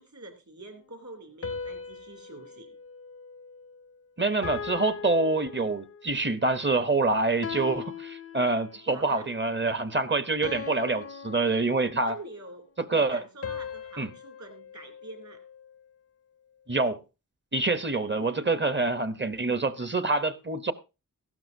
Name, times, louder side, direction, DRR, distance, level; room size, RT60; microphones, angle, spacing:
voice 1, 0.0-2.7 8.9-9.3 12.1-15.4 18.0-18.6, right 2 dB, 55° right, 2.9 m, -46 dB
sound 1, 1.4-3.9 4.4-6.2 7.4-9.0 10.4-12.3 13.4-15.8, left 6 dB, 40° left, 0.5 m, -40 dB
voice 2, 4.2-12.1 12.8-13.2 14.0-14.1 16.7-17.0 17.5-20.7, right 3 dB, 30° right, 0.8 m, -26 dB
15.5 x 12.5 x 2.7 m
wide cardioid pair, 55°, 35 cm